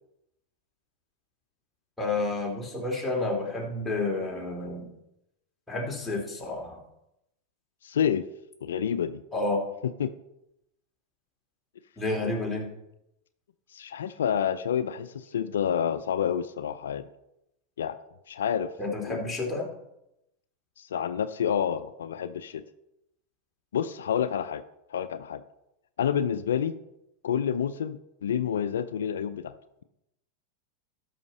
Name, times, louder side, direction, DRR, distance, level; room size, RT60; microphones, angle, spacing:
voice 1, 2.0-4.9 5.7-6.8 9.3-9.6 12.0-12.7 18.8-19.7, left 2 dB, 10° left, -2 dB, 3.0 m, -30 dB
voice 2, 7.8-8.2 8.6-9.2 10.0-10.1 13.7-17.1 17.8-18.0 18.3-18.7 19.1-19.2 20.8-22.6 23.7-24.6 24.9-25.4 26.0-26.7 27.2-29.5, left 8 dB, 85° left, 12 dB, 0.4 m, -28 dB
13.0 x 5.7 x 4.2 m, 0.86 s
hypercardioid pair, 105°, 0 cm